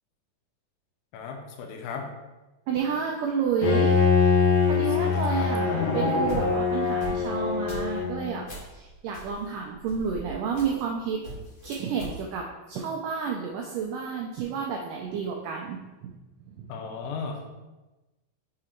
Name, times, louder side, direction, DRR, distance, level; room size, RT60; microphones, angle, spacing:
voice 1, 1.1-2.1 5.0-5.5 16.7-17.6, left 5 dB, 85° left, 2 dB, 2.8 m, -36 dB
voice 2, 2.7-4.3 4.7-8.4 8.7-11.2 11.6-16.1 16.5-16.7, right 6 dB, 85° right, 0 dB, 1.8 m, -30 dB
Bowed string instrument, 3.6-8.4, left 5 dB, 65° left, 1.6 m, -23 dB
sound 1, 6.0-8.8 9.1-11.0 11.2-12.2, right 1 dB, 45° left, 2.8 m, -40 dB
6.1 x 3.8 x 4.4 m, 1.1 s
omnidirectional pair, 4.4 m